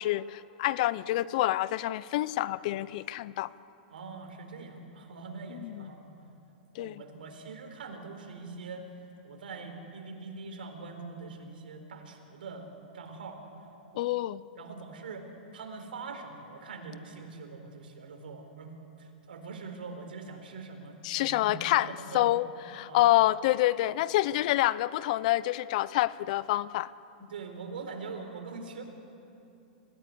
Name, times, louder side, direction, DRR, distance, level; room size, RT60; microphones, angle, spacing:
voice 1, 0.0-3.5 5.6-5.9 6.7-7.0 14.0-14.4 21.0-22.5 22.7-26.9, left 16 dB, 55° left, 18 dB, 0.6 m, -27 dB
voice 2, 3.9-6.0 6.8-8.9 9.2-12.7 12.9-13.4 13.9-14.0 14.6-15.3 15.5-18.7 19.0-22.3 22.9-23.1 27.2-28.8, right 4 dB, 80° right, 5 dB, 4.2 m, -43 dB
25.5 x 16.5 x 9.9 m, 2.9 s
hypercardioid pair, 140°, 5 cm